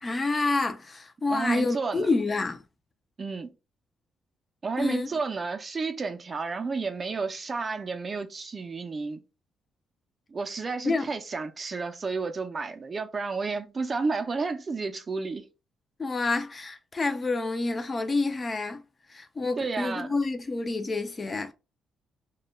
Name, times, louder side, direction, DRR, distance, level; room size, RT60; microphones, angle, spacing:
voice 1, 0.0-2.6 4.8-5.1 10.8-11.1 16.0-18.8 19.1-21.5, left 3 dB, 30° left, 0.3 m, -28 dB
voice 2, 1.3-2.1 3.2-3.5 4.6-9.2 10.3-15.5 19.6-20.1, right 4 dB, 35° right, 0.4 m, -31 dB
2.1 x 2.1 x 3.1 m
cardioid pair, 90°, 0 cm